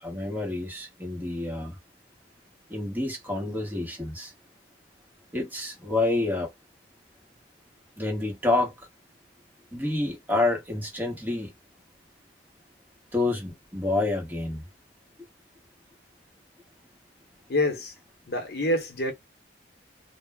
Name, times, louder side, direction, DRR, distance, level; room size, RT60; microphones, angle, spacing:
voice 1, 0.0-1.8 2.7-4.3 5.3-6.5 8.0-8.8 9.7-11.5 13.1-14.6, left 2 dB, 10° right, 1.0 m, -28 dB
voice 2, 17.5-17.9 18.3-19.1, left 1 dB, 60° left, 0.8 m, -26 dB
2.2 x 2.0 x 3.4 m
head